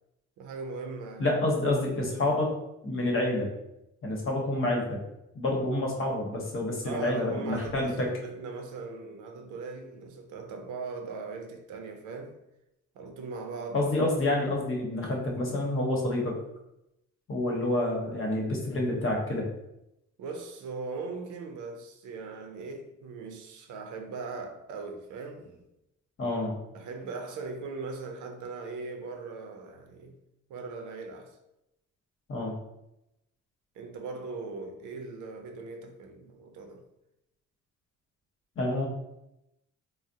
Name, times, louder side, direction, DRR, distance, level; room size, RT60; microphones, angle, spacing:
voice 1, 0.4-1.4 6.8-12.4 13.0-13.9 20.2-25.6 26.7-30.2 30.5-31.4 33.8-36.9, right 4 dB, 80° right, 0.5 m, -39 dB
voice 2, 1.2-2.5 2.8-3.5 4.0-5.0 5.3-8.1 13.7-16.3 17.3-19.4 26.2-26.6 32.3-32.6 38.6-38.9, left 1 dB, 45° left, 0.9 m, -28 dB
3.4 x 2.0 x 2.6 m
cardioid pair, 90°, 30 cm